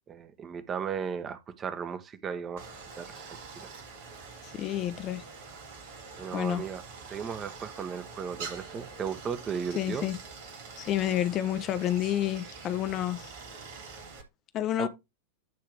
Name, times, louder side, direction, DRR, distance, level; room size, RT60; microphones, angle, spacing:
voice 1, 0.1-2.7 3.0-3.7 6.2-10.1 14.8-14.9, right 7 dB, 25° right, 1.1 m, -36 dB
Stream, 2.6-14.2, right 4 dB, 50° right, 3.0 m, -45 dB
voice 2, 4.4-5.2 6.3-6.6 9.7-10.2 10.8-13.3 14.5-14.9, left 12 dB, 35° left, 0.8 m, -29 dB
10.5 x 3.7 x 4.8 m
figure-of-eight pair, 90°, 0 cm